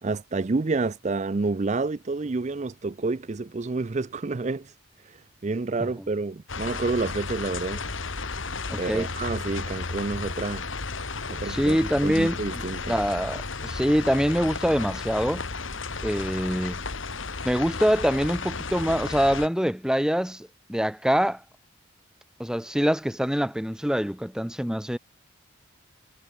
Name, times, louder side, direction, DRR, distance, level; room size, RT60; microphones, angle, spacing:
voice 1, 0.0-4.7 5.1-7.8 8.8-10.6 11.3-12.9, right 3 dB, 35° right, 0.5 m, -29 dB
sound 1, 6.5-19.5, left 4 dB, 70° left, 2.2 m, -33 dB
voice 2, 8.7-9.1 11.4-15.4 16.0-16.8 17.4-21.4 22.4-25.0, equal, 5° right, 1.0 m, -25 dB
head